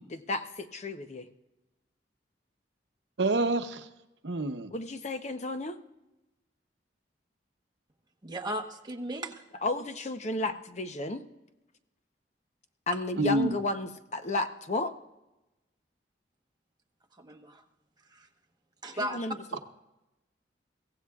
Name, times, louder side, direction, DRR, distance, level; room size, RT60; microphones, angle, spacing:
voice 1, 0.1-1.3 4.7-5.8 9.6-11.2 12.9-14.9 19.0-19.3, left 2 dB, 40° left, 8 dB, 0.8 m, -32 dB
voice 2, 3.2-3.9 4.2-4.7 13.2-13.6, right 2 dB, 75° right, 8 dB, 0.8 m, -27 dB
voice 3, 8.2-9.4 17.1-17.6 18.1-18.3 18.8-19.2, right 1 dB, 25° right, 3 dB, 1.1 m, -36 dB
23.0 x 16.0 x 2.4 m, 0.97 s
head